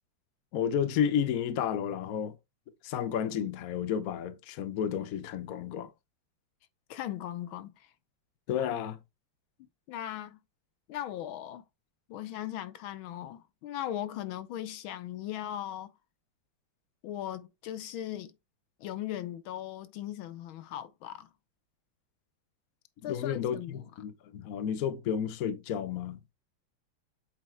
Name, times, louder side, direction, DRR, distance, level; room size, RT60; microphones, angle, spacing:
voice 1, 0.5-2.4 2.8-5.9 8.5-9.0 23.0-26.2, left 8 dB, 60° left, 1.0 m, -31 dB
voice 2, 6.9-7.9 8.5-8.6 9.9-10.4 10.9-11.6 12.1-15.9 17.0-18.3 18.8-21.3 23.0-23.8, left 12 dB, 80° left, 1.5 m, -38 dB
8.2 x 4.2 x 3.2 m
omnidirectional pair, 2.2 m